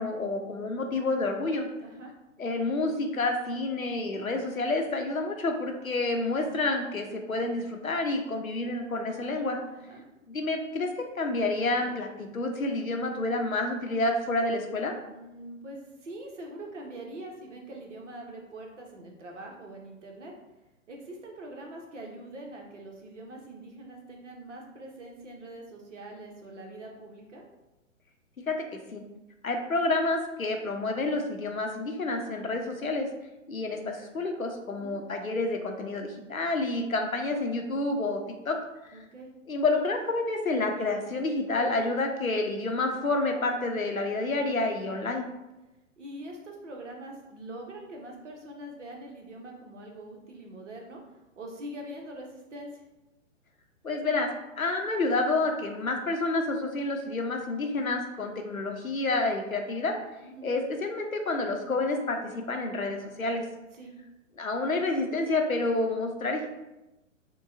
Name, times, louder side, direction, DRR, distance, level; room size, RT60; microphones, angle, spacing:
voice 1, 0.0-1.7 2.4-9.6 10.3-10.9 11.1-14.9 28.5-28.6 28.9-29.0 29.4-33.1 33.5-38.2 38.5-38.6 39.5-45.3 53.8-54.3 54.6-59.9 60.4-63.4 64.4-66.5, left 2 dB, 85° left, 3 dB, 0.8 m, -29 dB
voice 2, 1.8-2.1 9.7-10.0 15.1-20.3 20.9-27.4 34.7-35.0 38.9-39.3 46.0-51.0 51.4-52.8 60.2-60.5 63.7-63.9, right 1 dB, 60° right, 1 dB, 1.0 m, -43 dB
6.5 x 2.3 x 2.6 m, 0.99 s
figure-of-eight pair, 115°, 40 cm